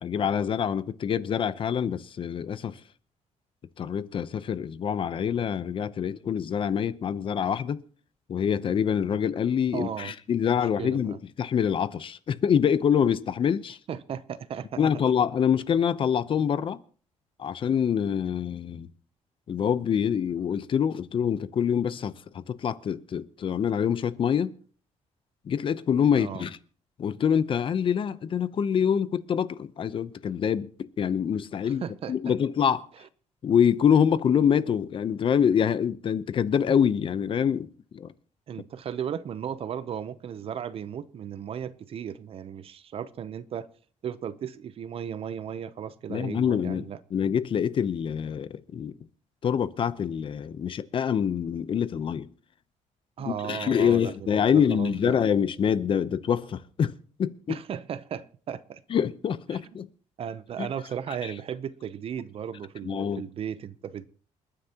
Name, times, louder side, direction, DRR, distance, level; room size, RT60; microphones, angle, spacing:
voice 1, 0.0-2.8 3.8-7.8 8.3-13.8 14.8-16.8 17.4-18.9 19.5-24.5 25.4-26.6 27.0-32.9 33.4-38.1 46.1-46.8 47.1-48.9 49.4-52.3 53.2-57.6 58.9-59.9 61.2-61.3 62.8-63.2, left 8 dB, 45° left, 0.8 m, -25 dB
voice 2, 9.7-10.1 10.4-11.2 13.9-14.8 26.1-26.4 31.6-32.1 38.5-43.7 44.0-47.0 53.2-55.2 57.5-58.8 59.5-59.6 60.2-64.1, right 8 dB, 50° right, 0.7 m, -36 dB
28.5 x 9.8 x 2.9 m
cardioid pair, 145°, 13 cm